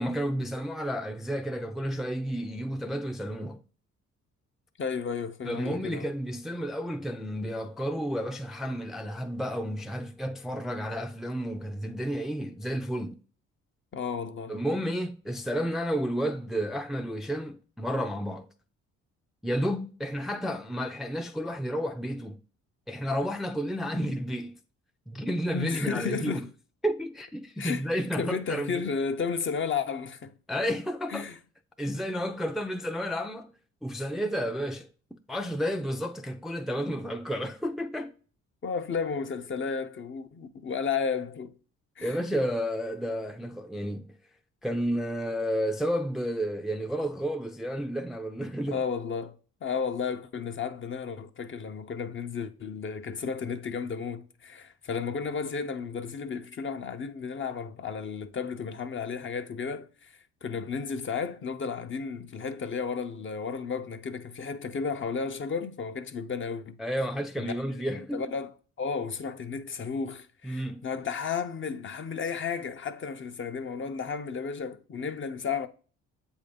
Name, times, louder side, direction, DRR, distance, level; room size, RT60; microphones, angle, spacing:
voice 1, 0.0-3.6 5.5-13.2 14.5-18.5 19.4-22.4 22.9-24.6 25.1-26.5 26.8-28.8 30.5-31.3 31.8-33.5 33.8-34.9 35.3-38.1 42.0-44.1 44.6-48.8 66.8-68.2 70.4-70.8, equal, ahead, 0.4 m, -31 dB
voice 2, 4.8-6.1 13.9-14.5 25.5-26.5 27.6-27.9 28.2-30.3 31.1-31.4 38.6-41.5 42.0-42.2 48.7-49.4 49.6-66.8 67.4-68.5 68.8-75.7, left 5 dB, 40° left, 0.7 m, -33 dB
7.6 x 2.7 x 5.2 m
cardioid pair, 90°, 30 cm